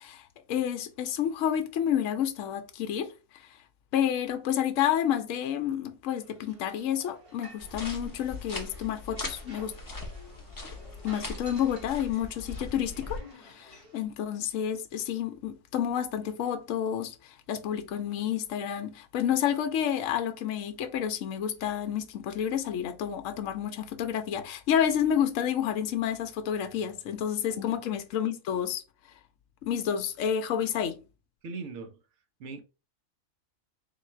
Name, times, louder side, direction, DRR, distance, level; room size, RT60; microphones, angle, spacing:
voice 1, 0.0-3.1 3.3-3.5 3.9-9.7 11.0-28.8 29.6-31.0, left 9 dB, 70° left, 0.9 m, -30 dB
sound 1, 6.1-14.0, right 1 dB, 25° right, 1.0 m, -53 dB
sound 2, 7.6-13.2, left 3 dB, 20° left, 0.5 m, -40 dB
voice 2, 31.4-32.0 32.4-32.6, right 4 dB, 60° right, 1.0 m, -40 dB
3.8 x 2.4 x 4.2 m
omnidirectional pair, 1.4 m